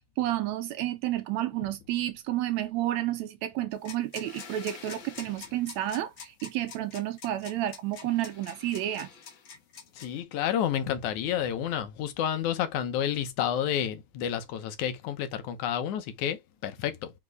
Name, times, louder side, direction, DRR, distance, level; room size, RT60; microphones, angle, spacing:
voice 1, 0.2-9.1, right 13 dB, 80° right, 1.7 m, -31 dB
sound 1, 3.7-10.2, left 6 dB, 50° left, 1.6 m, -45 dB
voice 2, 10.0-17.1, left 9 dB, 75° left, 2.3 m, -30 dB
5.4 x 4.3 x 4.7 m
omnidirectional pair, 3.5 m